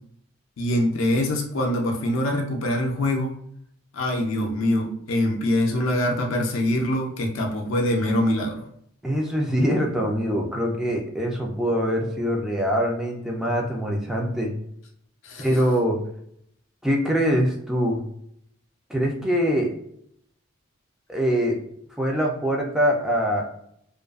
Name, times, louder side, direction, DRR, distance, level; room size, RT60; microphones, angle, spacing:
voice 1, 0.6-3.3 3.9-8.6 15.2-15.5, left 1 dB, 75° left, 1 dB, 0.4 m, -24 dB
voice 2, 9.0-14.5 15.4-16.0 16.8-18.0 18.9-19.7 21.1-21.6 22.0-23.5, equal, ahead, -1 dB, 0.3 m, -23 dB
2.4 x 2.2 x 2.3 m, 0.71 s
head